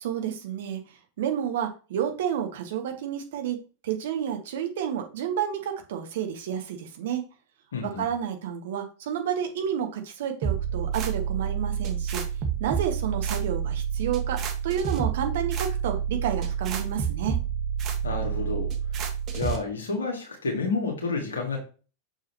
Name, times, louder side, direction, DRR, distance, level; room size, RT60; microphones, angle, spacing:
voice 1, 0.0-0.8 1.2-7.2 7.8-12.2 12.6-17.4, right 9 dB, 55° right, 5 dB, 1.4 m, -30 dB
voice 2, 7.7-8.1 18.0-18.7 19.3-21.6, left 4 dB, 70° left, 1 dB, 1.7 m, -30 dB
sound 1, 10.4-19.6, right 8 dB, 35° right, 1.4 m, -29 dB
6.5 x 6.1 x 2.8 m, 0.34 s
figure-of-eight pair, 90°, 0 cm